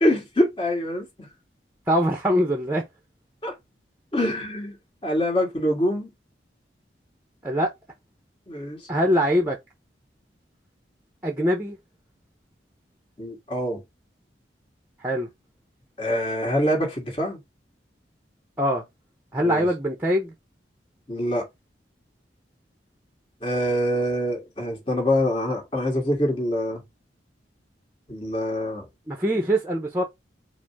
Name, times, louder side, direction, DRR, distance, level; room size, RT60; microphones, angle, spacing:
voice 1, 0.0-1.3 3.4-3.5 4.1-4.8 5.0-6.1 8.5-8.8 13.2-13.8 16.0-17.4 19.4-19.7 21.1-21.5 23.4-26.8 28.1-28.9, equal, 30° left, 1.6 m, -25 dB
voice 2, 1.9-2.8 7.4-7.7 8.9-9.6 11.2-11.8 15.0-15.3 18.6-18.8 19.3-20.3 29.1-30.0, equal, 10° right, 0.7 m, -23 dB
4.9 x 2.1 x 4.6 m
head